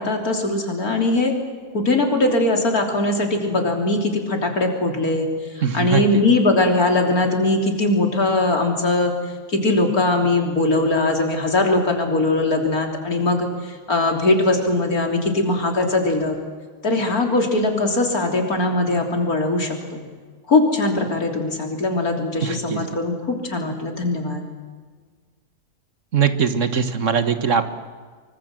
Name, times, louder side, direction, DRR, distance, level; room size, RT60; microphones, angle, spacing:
voice 1, 0.0-1.3 1.7-16.4 16.8-20.0 20.5-24.5, left 2 dB, 85° left, 3 dB, 3.8 m, -21 dB
voice 2, 5.6-6.0 22.4-22.9 26.1-27.6, right 6 dB, 60° right, 10 dB, 1.7 m, -21 dB
24.5 x 24.5 x 7.7 m, 1.5 s
omnidirectional pair, 1.5 m